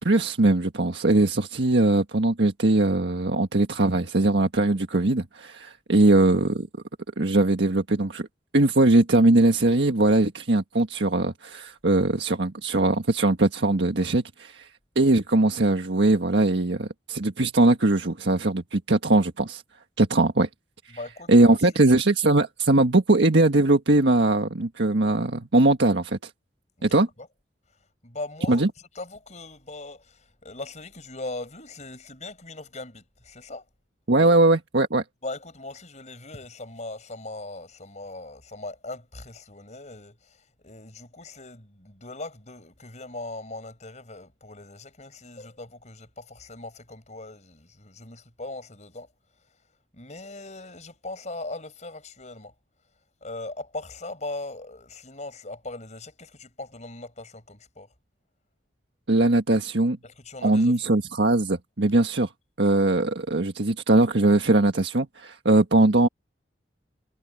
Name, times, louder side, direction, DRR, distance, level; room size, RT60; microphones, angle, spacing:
voice 1, 0.0-6.7 7.2-8.3 8.5-14.7 14.9-19.6 20.0-20.5 20.9-21.0 21.3-26.3 26.8-27.1 28.5-28.7 34.1-35.0 59.1-60.0 60.4-62.3 62.6-66.1, right 2 dB, 80° right, 1.5 m, -21 dB
voice 2, 20.9-21.7 26.8-27.3 28.0-33.6 34.2-34.3 35.2-49.1 49.9-52.5 53.2-57.9 60.0-60.9, left 2 dB, 40° left, 6.2 m, -40 dB
head